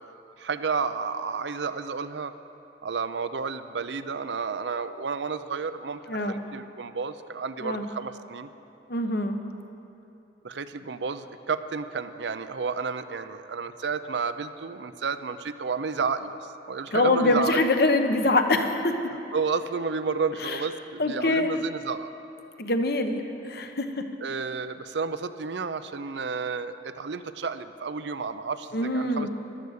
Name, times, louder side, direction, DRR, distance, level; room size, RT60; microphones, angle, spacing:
voice 1, 0.4-2.3 2.8-8.5 10.4-17.6 19.3-22.1 24.2-28.7 28.9-29.3, right 5 dB, 80° right, 12 dB, 0.6 m, -31 dB
voice 2, 8.9-9.4 16.9-18.9 20.4-20.6 21.0-21.6 22.6-23.9 28.7-29.3, left 2 dB, 60° left, 6 dB, 1.0 m, -24 dB
13.5 x 12.0 x 6.6 m, 2.9 s
head